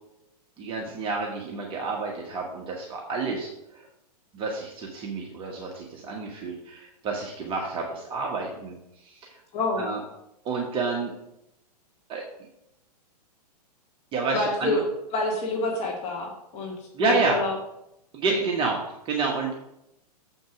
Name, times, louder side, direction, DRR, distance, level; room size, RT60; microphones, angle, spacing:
voice 1, 0.6-3.9 4.3-8.7 9.0-9.3 9.8-10.0 10.4-11.1 12.1-12.2 14.1-14.8 16.9-17.4 18.1-19.6, right 4 dB, 25° right, -1 dB, 1.3 m, -29 dB
voice 2, 9.5-9.9 14.3-14.8 15.1-16.7 17.0-17.6 18.3-18.4, left 2 dB, 30° left, -1 dB, 1.7 m, -27 dB
7.5 x 5.3 x 6.0 m, 0.85 s
hypercardioid pair, 130°, 21 cm